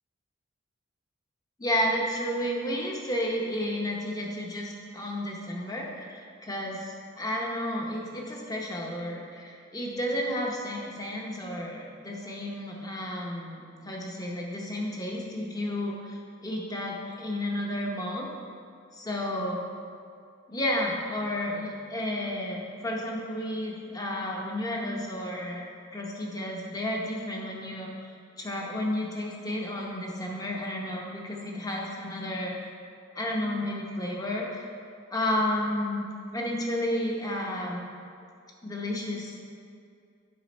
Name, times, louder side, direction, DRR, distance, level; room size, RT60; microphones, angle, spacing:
voice 1, 1.6-18.3 18.9-19.6 20.5-25.6 25.9-27.9 28.4-32.6 33.1-34.7 35.1-36.0 36.3-37.9 38.6-39.5, left 1 dB, 20° left, -1 dB, 0.8 m, -32 dB
7.7 x 5.1 x 4.1 m, 2.4 s
head